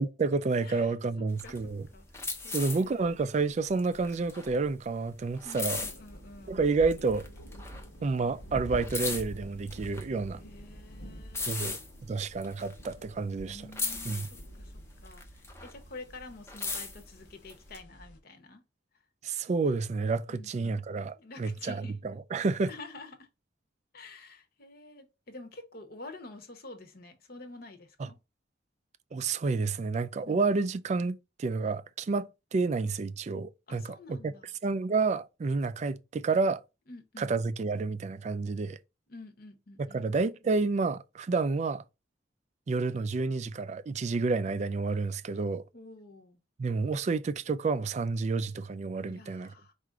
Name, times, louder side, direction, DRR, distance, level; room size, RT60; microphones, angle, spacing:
voice 1, 0.0-1.9 2.5-5.8 6.5-7.3 8.0-10.4 11.5-11.8 12.1-13.6 14.0-14.3 19.2-21.8 22.3-22.7 29.1-34.3 34.6-36.6 37.2-38.8 39.8-41.8 42.7-45.6 46.6-49.5, right 4 dB, 40° right, 0.3 m, -29 dB
voice 2, 0.6-3.1 5.4-6.6 10.3-11.8 13.4-18.6 20.3-20.8 21.1-22.0 22.7-23.3 23.9-28.2 30.2-30.7 33.7-34.6 36.9-37.4 39.1-40.1 45.7-46.4 49.0-49.7, left 2 dB, 55° left, 0.9 m, -49 dB
sound 1, 1.3-6.5 6.9-8.2 8.5-13.4 13.7-16.0 16.3-17.8, left 3 dB, 15° left, 0.6 m, -38 dB
sound 2, 5.8-18.2, right 1 dB, 80° left, 1.0 m, -47 dB
4.7 x 2.5 x 4.5 m
head